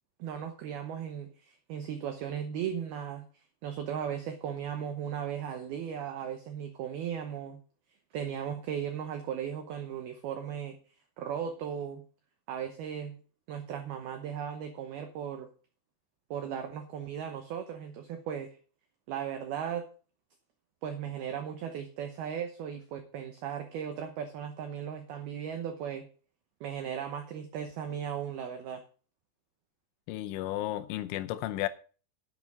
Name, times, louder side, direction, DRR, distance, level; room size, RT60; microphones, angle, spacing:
voice 1, 0.2-3.3 3.6-7.6 8.1-10.8 11.2-12.0 12.5-13.2 13.5-15.5 16.3-18.6 19.1-19.9 20.8-26.1 26.6-28.8, right 8 dB, 85° right, 2.2 m, -37 dB
voice 2, 30.1-31.7, left 15 dB, 80° left, 3.1 m, -33 dB
10.5 x 7.7 x 6.1 m
omnidirectional pair, 5.9 m